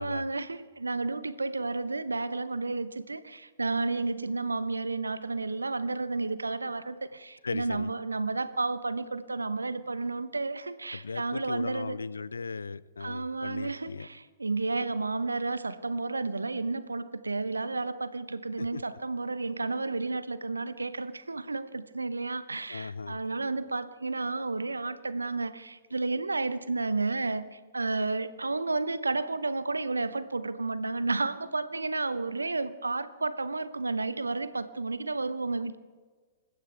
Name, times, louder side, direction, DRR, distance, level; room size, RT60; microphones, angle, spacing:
voice 1, 0.0-12.0 13.0-35.8, right 3 dB, 80° right, 14 dB, 0.9 m, -32 dB
voice 2, 7.4-7.9 10.9-14.1 18.6-18.8 22.7-23.2, left 4 dB, 75° left, 19 dB, 0.5 m, -37 dB
27.0 x 15.0 x 3.4 m, 1.4 s
figure-of-eight pair, 110°, 0 cm